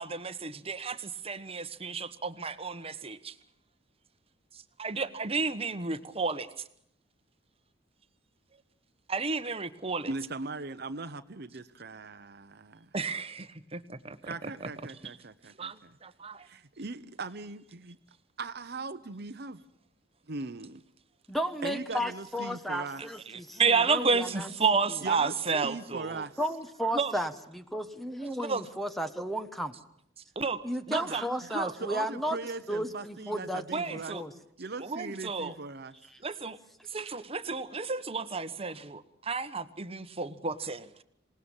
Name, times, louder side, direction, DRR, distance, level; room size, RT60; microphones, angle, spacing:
voice 1, 0.0-3.3 4.5-6.5 9.1-10.1 12.9-15.2 15.6-16.5 23.0-26.3 26.9-27.1 28.4-28.6 30.3-31.7 33.7-34.2 34.8-35.5 36.2-36.6 36.9-41.0, right 4 dB, 30° right, 12 dB, 1.3 m, -32 dB
voice 2, 10.1-12.9 14.2-15.9 16.4-18.0 18.4-19.6 20.3-20.8 21.6-23.0 25.0-26.3 30.9-31.5 31.8-34.2 34.6-35.9, right 3 dB, 60° right, 11 dB, 1.0 m, -39 dB
voice 3, 21.3-23.6 23.9-24.5 26.4-27.3 27.7-29.7 30.6-32.4 32.7-34.3, equal, ahead, 9 dB, 1.2 m, -33 dB
26.5 x 19.0 x 7.3 m, 0.72 s
head